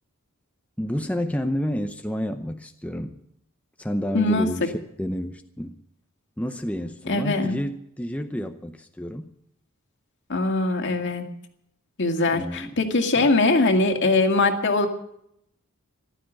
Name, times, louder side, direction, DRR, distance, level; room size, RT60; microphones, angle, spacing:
voice 1, 0.8-3.2 3.8-4.6 5.0-5.8 6.4-9.3 12.3-12.7 13.2-13.3, equal, 5° left, 6 dB, 0.7 m, -29 dB
voice 2, 4.1-4.7 7.0-7.6 10.3-11.3 12.0-14.9, left 2 dB, 55° left, 5 dB, 2.1 m, -22 dB
15.0 x 12.0 x 7.4 m, 0.75 s
head